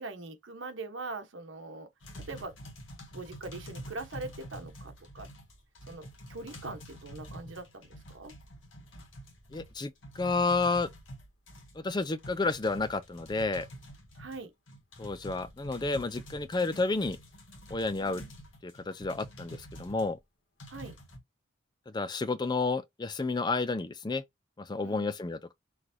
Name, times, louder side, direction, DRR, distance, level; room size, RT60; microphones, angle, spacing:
voice 1, 0.0-1.9 2.3-2.6 3.1-5.3 5.9-8.3 14.2-14.5 18.0-18.3 20.7-21.0 24.8-25.1, right 3 dB, 75° right, 1.1 m, -42 dB
sound 1, 2.0-20.1 20.6-21.2, equal, 80° left, 1.7 m, -47 dB
voice 2, 9.5-10.9 11.8-13.7 15.0-17.2 17.7-18.2 18.6-20.2 21.9-24.2 24.6-25.5, left 3 dB, 20° left, 0.4 m, -31 dB
6.0 x 3.3 x 2.7 m
head